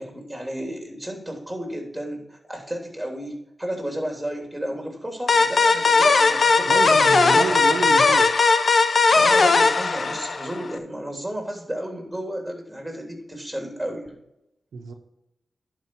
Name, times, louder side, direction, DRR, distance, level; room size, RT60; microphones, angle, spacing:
voice 1, 0.0-7.6 9.1-14.1, equal, 5° right, 1 dB, 3.0 m, -32 dB
sound 1, 5.3-10.7, left 4 dB, 60° left, 0.6 m, -18 dB
voice 2, 6.7-8.5 14.7-14.9, right 5 dB, 90° right, 3 dB, 0.9 m, -29 dB
11.0 x 4.9 x 4.6 m, 0.84 s
cardioid pair, 60°, 0 cm